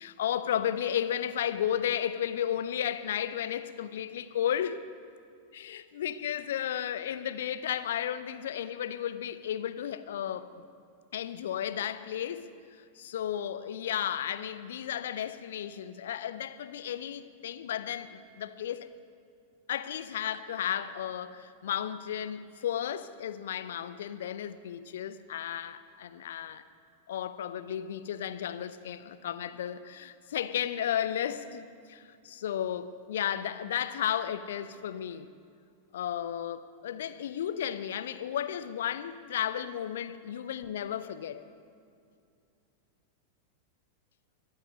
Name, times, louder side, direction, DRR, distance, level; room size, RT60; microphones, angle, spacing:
voice 1, 0.0-4.8 5.5-10.5 11.1-12.5 12.8-18.9 19.7-26.6 27.1-35.3 35.9-41.4, left 10 dB, 60° left, 13 dB, 0.6 m, -33 dB
22.5 x 8.2 x 5.2 m, 2.4 s
figure-of-eight pair, 90°, 0 cm